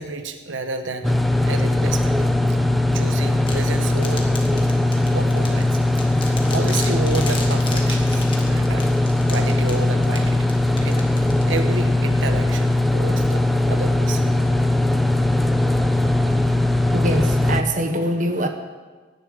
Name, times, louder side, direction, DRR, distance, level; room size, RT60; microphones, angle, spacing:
voice 1, 0.0-2.2 2.5-2.6 2.9-4.6 5.1-6.1 6.5-9.0 9.3-10.5 10.8-14.3, right 3 dB, 90° right, 7 dB, 1.0 m, -31 dB
sound 1, 1.0-17.6, left 1 dB, ahead, 0.6 m, -19 dB
sound 2, 3.5-11.9, left 3 dB, 25° left, 1.7 m, -36 dB
voice 2, 16.9-18.5, right 1 dB, 40° right, 5 dB, 1.2 m, -23 dB
17.5 x 10.0 x 5.1 m, 1.3 s
head